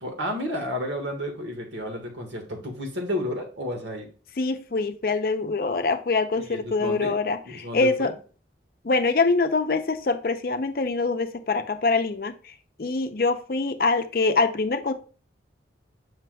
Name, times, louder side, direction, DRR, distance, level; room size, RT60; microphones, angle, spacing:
voice 1, 0.0-4.1 6.3-7.2 7.4-8.1, left 1 dB, 85° right, 3 dB, 1.6 m, -31 dB
voice 2, 4.4-8.1 8.8-12.3 12.8-14.9, left 3 dB, 50° left, 9 dB, 0.5 m, -24 dB
7.6 x 5.7 x 2.3 m, 0.39 s
head